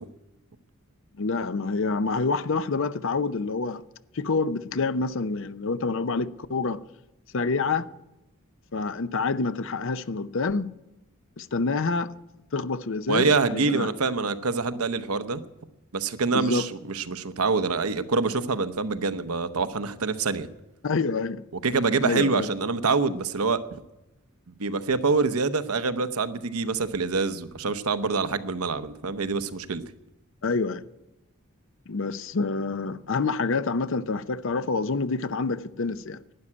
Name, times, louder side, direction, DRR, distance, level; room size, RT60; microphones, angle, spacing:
voice 1, 1.2-3.8 4.1-6.8 7.3-7.9 8.7-10.7 11.4-12.1 12.5-14.1 16.3-16.7 20.8-21.4 22.0-22.5 30.4-30.8 31.9-36.2, left 4 dB, 60° left, 0.6 m, -27 dB
voice 2, 13.1-15.4 15.9-20.5 21.6-23.8 24.5-29.8, right 4 dB, 85° right, 0.9 m, -26 dB
12.0 x 9.9 x 9.7 m
head